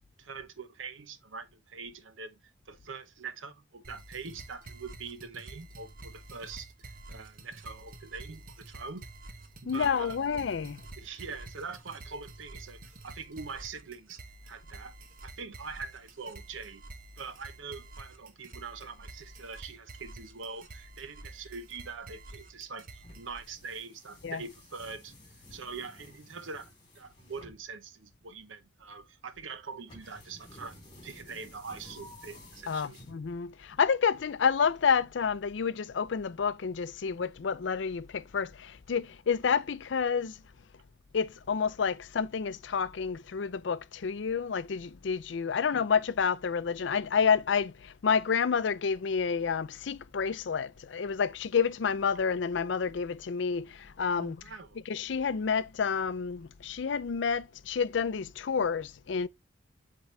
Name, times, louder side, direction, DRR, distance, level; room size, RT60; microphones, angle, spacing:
voice 1, 0.2-6.7 7.1-9.1 9.6-10.2 11.0-14.2 14.5-15.0 15.2-16.8 17.2-25.1 25.5-33.0 54.2-54.8, right 4 dB, 85° right, 0.8 m, -43 dB
sound 1, 3.8-23.4, right 2 dB, 45° right, 1.0 m, -49 dB
voice 2, 9.7-10.8 24.2-24.4 32.7-40.4 41.1-54.4 54.9-59.3, left 6 dB, 70° left, 0.5 m, -29 dB
sound 2, 23.0-33.6, left 1 dB, 25° left, 3.9 m, -53 dB
8.0 x 3.8 x 3.2 m
head